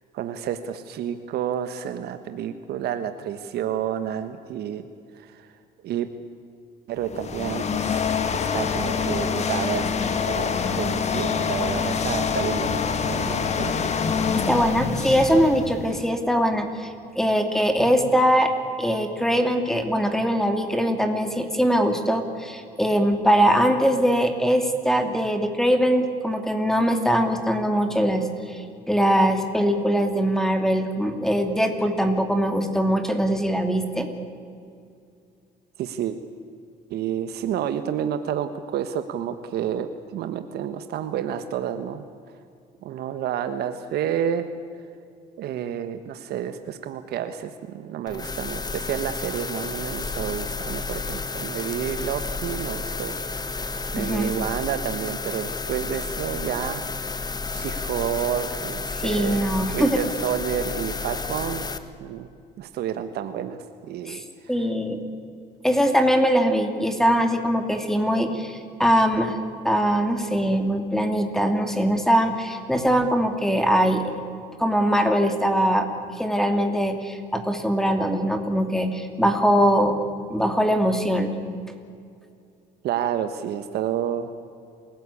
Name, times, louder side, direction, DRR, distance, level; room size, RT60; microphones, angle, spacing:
voice 1, 0.1-4.8 5.2-5.5 5.8-6.1 6.9-9.9 10.2-14.1 35.8-36.2 36.9-42.0 42.8-44.5 45.4-53.2 53.5-57.2 57.5-59.4 59.7-61.6 62.0-62.3 62.6-64.2 64.6-64.7 82.8-84.3, right 9 dB, 75° right, 9 dB, 1.3 m, -30 dB
sound 1, 7.0-16.2, left 6 dB, 40° left, 1.8 m, -26 dB
voice 2, 14.3-16.9 17.2-18.5 18.8-34.1 54.0-54.3 59.0-60.0 64.1-64.2 64.5-65.0 65.6-69.4 69.6-74.1 74.6-75.9 76.2-80.0 80.3-81.3, equal, 5° left, 6 dB, 2.7 m, -22 dB
sound 2, 48.1-61.8, left 4 dB, 25° left, 1.3 m, -31 dB
28.0 x 16.5 x 8.6 m, 2.4 s
cardioid pair, 110°, 17 cm